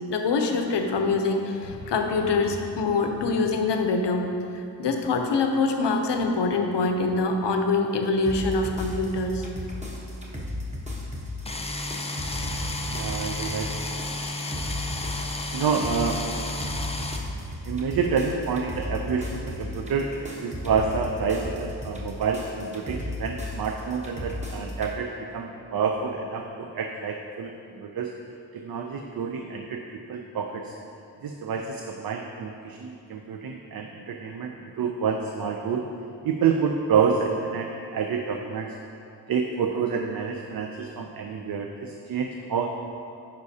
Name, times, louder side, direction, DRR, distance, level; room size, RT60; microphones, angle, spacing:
voice 1, 0.1-4.3 4.5-9.5, left 3 dB, 85° left, 4 dB, 0.7 m, -24 dB
sound 1, 8.3-24.9, left 1 dB, 15° right, 0.9 m, -35 dB
sound 2, 11.5-17.2, left 2 dB, 15° left, 0.4 m, -32 dB
voice 2, 12.9-13.9 15.5-16.2 17.6-27.5 27.8-28.1 28.5-29.8 30.1-30.7 31.2-35.8 36.2-38.7 39.3-42.7, right 6 dB, 60° right, 3 dB, 0.5 m, -28 dB
9.5 x 5.3 x 2.8 m, 2.6 s
wide cardioid pair, 120°, 41 cm